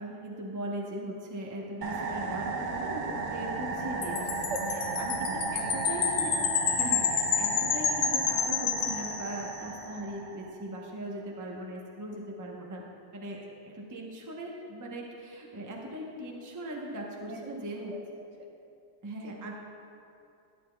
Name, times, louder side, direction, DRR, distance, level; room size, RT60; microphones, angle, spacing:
voice 1, 0.0-4.3 5.0-6.3 6.8-12.8 13.1-13.4 13.7-17.9 19.0-19.5, right 1 dB, 20° right, -1 dB, 0.6 m, -39 dB
sound 1, 1.8-10.6, right 3 dB, 80° right, 0.4 m, -35 dB
Wind chime, 4.0-9.7, left 7 dB, 80° left, 1.1 m, -30 dB
voice 2, 4.5-5.0 5.3-5.8 6.1-6.2 17.3-17.5 17.9-18.0 18.4-18.5 19.2-19.4, right 3 dB, 60° right, 0 dB, 1.1 m, -42 dB
12.0 x 9.9 x 2.2 m, 2.5 s
omnidirectional pair, 1.6 m